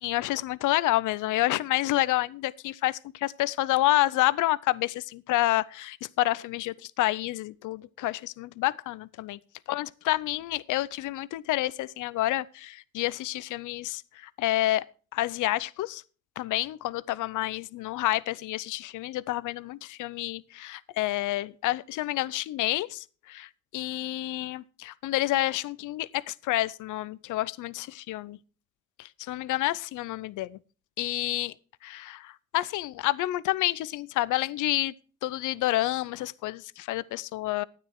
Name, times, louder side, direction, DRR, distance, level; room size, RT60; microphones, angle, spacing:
voice 1, 0.0-9.4 9.7-14.9 15.1-16.0 16.4-28.4 29.0-30.6 31.0-31.5 31.8-34.9 35.2-37.6, left 16 dB, 80° left, 0.6 m, -29 dB
12.5 x 9.5 x 4.5 m
cardioid pair, 90°, 30 cm